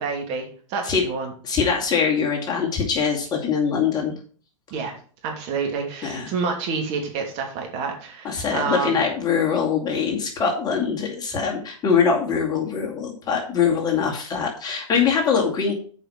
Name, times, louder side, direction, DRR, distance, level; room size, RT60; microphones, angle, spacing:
voice 1, 0.0-1.3 4.7-4.9 5.2-9.0, right 5 dB, 45° right, 2 dB, 2.7 m, -28 dB
voice 2, 1.4-4.1 6.0-6.3 8.2-15.7, left 6 dB, 25° left, -1 dB, 2.4 m, -23 dB
7.5 x 5.4 x 5.7 m, 0.43 s
hypercardioid pair, 120°, 17 cm